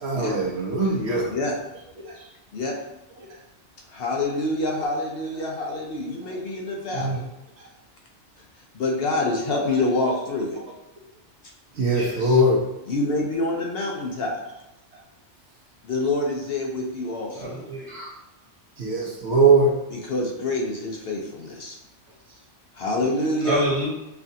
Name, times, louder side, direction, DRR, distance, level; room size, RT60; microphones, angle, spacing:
voice 1, 0.0-1.2 2.0-2.1 6.9-7.2 11.8-12.6 18.8-19.7, right 2 dB, 65° right, -1 dB, 1.0 m, -20 dB
voice 2, 3.9-7.2 8.7-10.6 12.9-14.4 15.8-17.5 19.9-21.8 22.8-23.6, left 2 dB, 60° left, -1 dB, 0.8 m, -26 dB
voice 3, 11.9-12.4 17.3-18.1 23.4-23.9, right 1 dB, 30° right, -5 dB, 1.1 m, -28 dB
5.6 x 2.4 x 2.7 m, 0.92 s
omnidirectional pair, 1.2 m